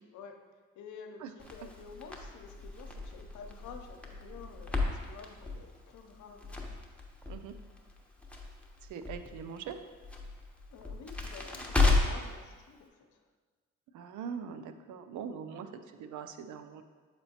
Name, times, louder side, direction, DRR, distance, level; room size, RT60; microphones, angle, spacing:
voice 1, 0.8-6.6 10.7-13.2, left 6 dB, 90° left, 4 dB, 0.6 m, -50 dB
Crackle, 1.4-12.3, left 3 dB, 5° left, 0.9 m, -34 dB
voice 2, 8.9-9.8 13.9-16.8, right 7 dB, 90° right, 9 dB, 0.5 m, -42 dB
7.7 x 4.3 x 2.8 m, 1.5 s
cardioid pair, 70°, 29 cm